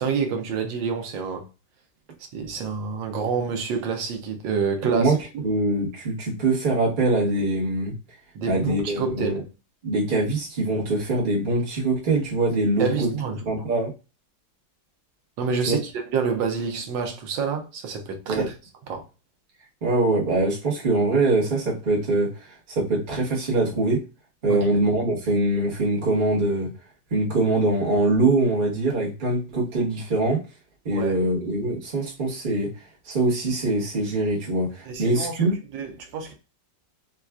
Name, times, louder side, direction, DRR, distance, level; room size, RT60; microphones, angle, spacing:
voice 1, 0.0-1.5 2.3-5.5 8.3-9.4 12.8-13.5 15.4-18.5 18.9-19.0 24.5-24.7 30.9-31.2 34.9-36.3, right 5 dB, 85° right, 1.4 m, -28 dB
voice 2, 4.8-5.2 5.4-7.9 8.5-9.4 9.8-13.1 13.4-13.9 15.7-15.8 18.3-18.5 19.8-24.0 24.4-26.7 27.1-30.4 30.8-32.7 33.0-35.5, right 2 dB, 30° right, 1.0 m, -23 dB
4.5 x 2.4 x 2.2 m
omnidirectional pair, 2.0 m